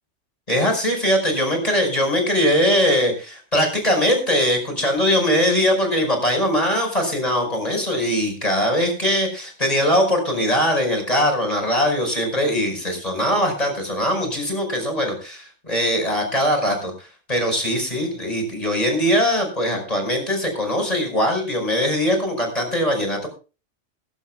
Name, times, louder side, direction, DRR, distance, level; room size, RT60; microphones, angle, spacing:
voice 1, 0.5-23.3, equal, 30° left, 3 dB, 5.4 m, -21 dB
23.0 x 11.5 x 2.3 m, 0.33 s
omnidirectional pair, 1.2 m